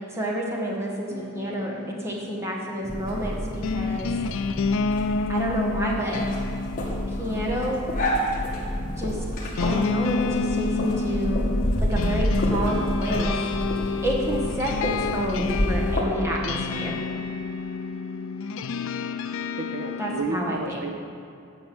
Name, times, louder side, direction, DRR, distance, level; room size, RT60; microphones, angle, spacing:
voice 1, 0.1-4.1 5.3-6.2 7.2-7.8 9.0-9.2 9.6-11.5 11.8-13.3 14.0-17.0 20.0-20.8, equal, 15° right, -3 dB, 1.5 m, -29 dB
sound 1, 1.1-20.3, left 4 dB, 65° left, 0.4 m, -30 dB
sound 2, 2.8-16.0, equal, 40° left, 1.9 m, -29 dB
voice 2, 19.5-21.0, right 3 dB, 55° right, 4 dB, 1.0 m, -31 dB
8.8 x 6.4 x 7.8 m, 2.5 s
head